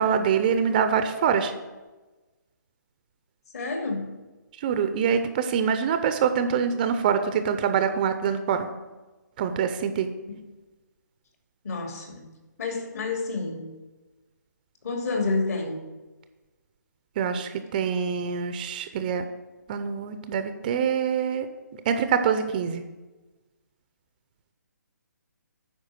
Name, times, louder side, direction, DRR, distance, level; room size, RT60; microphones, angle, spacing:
voice 1, 0.0-1.5 4.6-8.7 9.4-10.1 17.2-19.2 19.7-21.5 21.9-22.8, right 7 dB, 25° right, 9 dB, 0.5 m, -25 dB
voice 2, 3.5-4.1 10.3-10.4 11.6-12.2 12.6-13.6 14.8-15.8, left 3 dB, 55° left, 2 dB, 2.5 m, -29 dB
8.8 x 5.1 x 6.4 m, 1.2 s
figure-of-eight pair, 150°, 10 cm